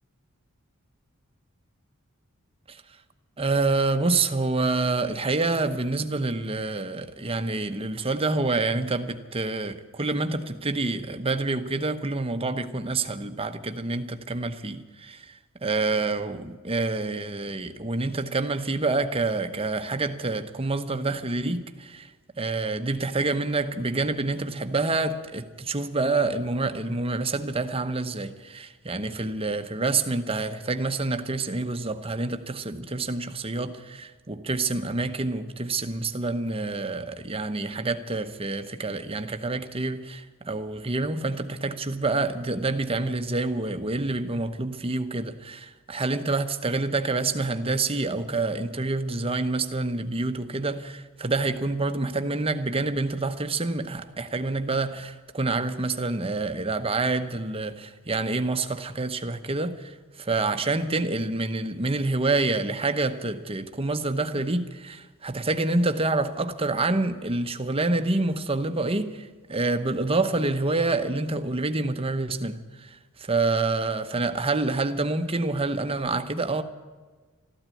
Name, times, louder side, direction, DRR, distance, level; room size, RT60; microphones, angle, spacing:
voice 1, 3.4-76.6, right 3 dB, 25° right, 0.9 m, -27 dB
14.0 x 12.0 x 8.4 m
head